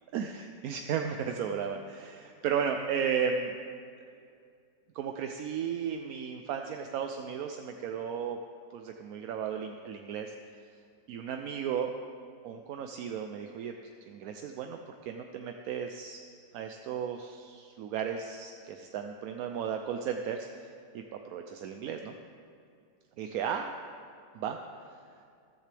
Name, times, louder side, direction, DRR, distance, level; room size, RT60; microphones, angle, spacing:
voice 1, 0.1-3.5 4.9-8.4 8.7-10.3 11.1-11.9 12.4-13.7 14.1-16.2 16.5-20.5 20.9-22.2 23.2-23.7 24.3-24.6, right 7 dB, 70° right, 5 dB, 0.9 m, -34 dB
14.0 x 13.5 x 3.4 m, 2.3 s
omnidirectional pair, 1.8 m